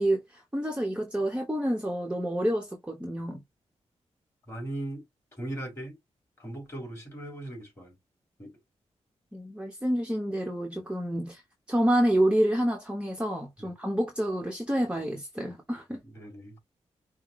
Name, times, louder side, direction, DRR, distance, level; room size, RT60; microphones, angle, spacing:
voice 1, 0.0-3.4 9.3-11.4 11.7-16.0, right 1 dB, 10° right, 1.1 m, -28 dB
voice 2, 4.5-5.1 5.4-6.0 6.4-8.0 8.4-8.6 13.6-13.7 16.0-16.6, right 1 dB, 25° left, 3.3 m, -38 dB
5.7 x 2.3 x 3.1 m
wide cardioid pair, 115°, 11 cm